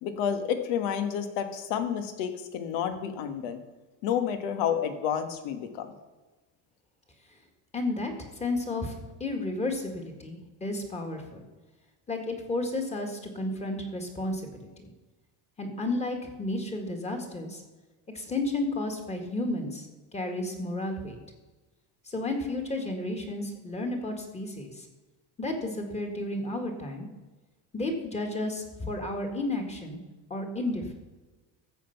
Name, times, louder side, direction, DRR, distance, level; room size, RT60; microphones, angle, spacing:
voice 1, 0.0-3.6 4.0-5.9, left 8 dB, 90° left, 8 dB, 1.6 m, -30 dB
voice 2, 7.7-11.4 12.1-14.9 15.6-17.6 18.1-19.9 20.1-21.2 22.1-24.9 25.4-27.1 27.7-30.0 30.3-30.9, left 2 dB, 15° left, 4 dB, 1.8 m, -32 dB
13.5 x 7.8 x 5.8 m, 1.2 s
cardioid pair, 160°, 41 cm